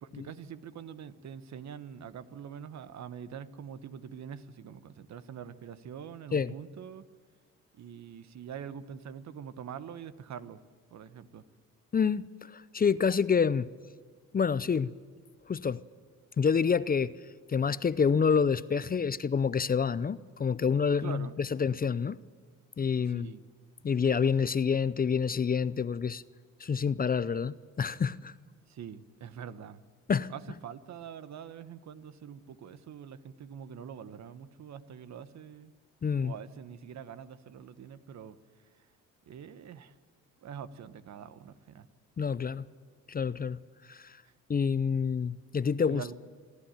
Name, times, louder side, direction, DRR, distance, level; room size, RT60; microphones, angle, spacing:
voice 1, 0.0-7.0 7.7-10.6 10.9-11.4 21.0-21.4 23.0-23.4 28.7-29.8 30.3-35.7 36.1-38.4 38.7-38.9 39.3-39.9 40.4-41.9 45.9-46.1, right 8 dB, 60° right, 1.1 m, -44 dB
voice 2, 11.9-13.7 14.3-14.9 15.5-15.8 16.4-17.1 17.5-22.2 22.8-23.3 23.8-26.2 26.6-28.3 30.1-30.3 36.0-36.3 42.2-42.7 43.1-43.6 43.9-44.2 44.5-46.1, left 6 dB, 30° left, 0.6 m, -28 dB
26.5 x 11.5 x 9.0 m
cardioid pair, 75°, 31 cm